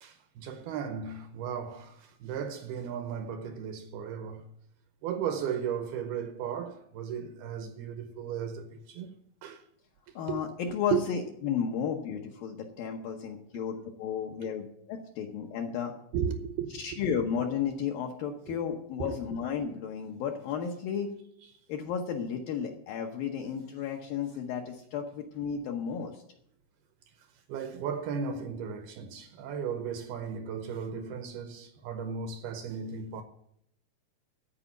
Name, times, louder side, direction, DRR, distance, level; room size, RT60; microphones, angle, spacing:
voice 1, 0.0-4.4 5.0-9.1 9.4-9.6 10.3-10.4 10.9-11.0 16.1-16.8 18.5-18.7 19.1-19.2 27.5-33.2, right 7 dB, 75° right, 2.4 m, -35 dB
voice 2, 10.2-15.9 16.8-21.1 21.7-26.2, left 7 dB, 70° left, 2.2 m, -33 dB
14.5 x 4.9 x 9.1 m
omnidirectional pair, 5.0 m